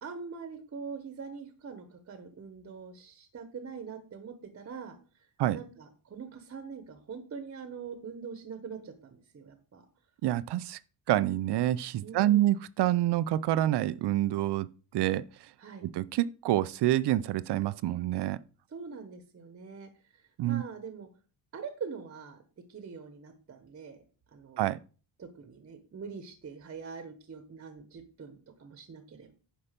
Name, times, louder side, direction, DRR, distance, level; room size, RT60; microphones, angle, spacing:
voice 1, 0.0-5.0 5.5-9.9 12.0-12.5 15.6-15.8 18.7-19.9 20.4-21.1 21.5-22.4 22.7-24.0 24.3-24.7 25.2-29.3, right 5 dB, 30° right, 1.2 m, -43 dB
voice 2, 10.2-10.8 11.1-14.7 14.9-15.2 15.8-18.4 20.4-20.6 24.6-24.8, right 14 dB, 60° right, 0.6 m, -27 dB
9.9 x 5.6 x 5.2 m
cardioid pair, 170°, 45 cm